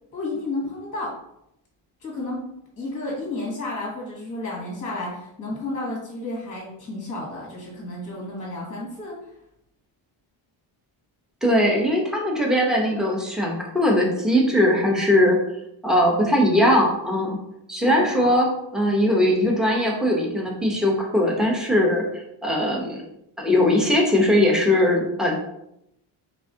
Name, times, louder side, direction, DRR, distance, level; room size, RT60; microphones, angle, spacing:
voice 1, 0.1-1.2 2.0-2.4 2.8-9.3 17.8-18.3, left 2 dB, 15° left, -4 dB, 1.2 m, -32 dB
voice 2, 11.4-15.4 15.8-17.4 17.7-18.5 18.7-22.0 22.4-23.0 23.4-25.3, left 1 dB, ahead, -1 dB, 0.7 m, -20 dB
4.7 x 3.3 x 2.7 m, 0.80 s
cardioid pair, 135°, 49 cm